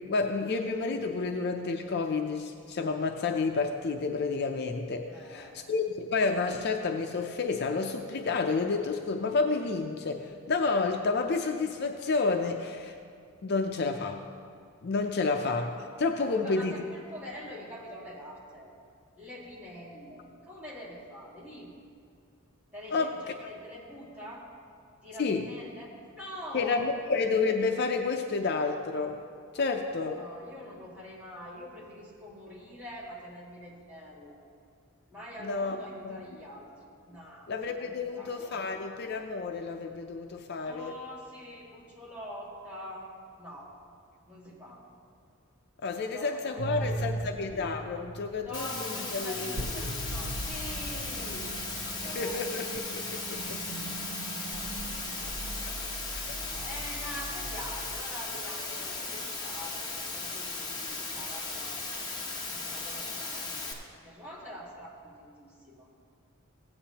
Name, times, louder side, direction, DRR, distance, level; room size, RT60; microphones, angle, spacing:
voice 1, 0.1-13.0 13.4-14.2 14.8-16.7 22.9-23.2 25.2-25.4 26.5-29.2 29.5-30.2 35.4-36.2 37.5-41.0 45.8-49.9 52.0-53.6 55.8-56.4, left 4 dB, 50° left, 4 dB, 0.5 m, -30 dB
voice 2, 5.1-5.6 16.2-18.7 19.2-21.8 22.7-24.5 25.0-26.8 29.7-34.4 35.1-36.7 37.1-37.5 37.8-38.6 40.6-43.7 44.3-44.8 46.1-47.3 48.4-52.7 53.7-54.7 56.3-61.8 62.5-63.7 64.0-65.9, equal, 5° right, -7 dB, 2.1 m, -45 dB
sound 1, 46.6-58.0, right 2 dB, 80° right, 0.8 m, -39 dB
Water, 48.5-63.7, left 3 dB, 20° left, 1.0 m, -37 dB
16.0 x 8.7 x 2.9 m, 2.3 s
head